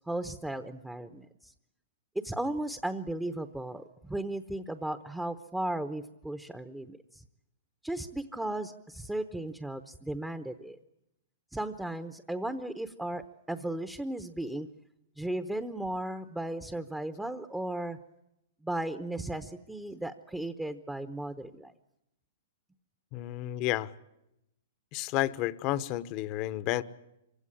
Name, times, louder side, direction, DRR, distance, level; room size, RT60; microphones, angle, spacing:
voice 1, 0.1-1.5 2.2-7.2 7.8-10.8 11.5-14.7 15.2-18.0 18.6-21.7, right 1 dB, 5° right, 10 dB, 0.9 m, -36 dB
voice 2, 23.1-23.9 24.9-26.8, left 15 dB, 40° left, 16 dB, 1.0 m, -31 dB
25.0 x 16.5 x 10.0 m, 0.87 s
hypercardioid pair, 135°, 0 cm